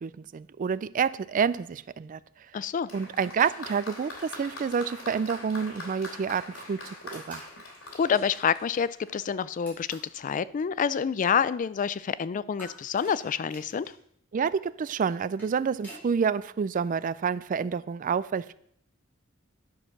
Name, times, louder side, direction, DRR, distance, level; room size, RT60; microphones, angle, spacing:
voice 1, 0.0-2.2 2.9-7.5 14.3-18.5, right 6 dB, 40° right, 17 dB, 0.3 m, -28 dB
voice 2, 2.5-2.9 8.0-13.9, left 7 dB, 40° left, 17 dB, 0.3 m, -28 dB
Applause, 2.9-9.3 10.2-10.3, left 2 dB, 90° left, 2.9 m, -43 dB
sound 1, 7.1-7.5 9.6-10.2 12.6-14.0 15.1-16.1, equal, 10° left, 4.3 m, -49 dB
10.5 x 6.4 x 6.0 m, 0.68 s
head